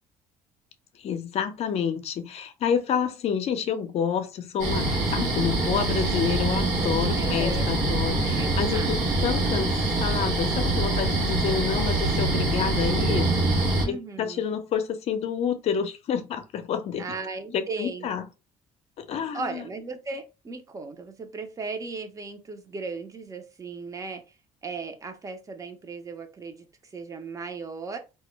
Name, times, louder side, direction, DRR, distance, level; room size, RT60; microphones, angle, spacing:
voice 1, 1.0-13.3 13.6-17.1 17.5-18.3 19.0-19.7, left 7 dB, 55° left, 0.5 m, -29 dB
sound 1, 4.6-13.8, right 2 dB, 90° right, 0.9 m, -24 dB
voice 2, 7.2-7.7 8.4-8.9 13.8-14.6 17.0-18.1 19.3-24.2 24.6-26.7 26.9-28.0, right 3 dB, 25° right, 0.6 m, -36 dB
2.2 x 2.1 x 3.0 m
cardioid pair, 105°, 13 cm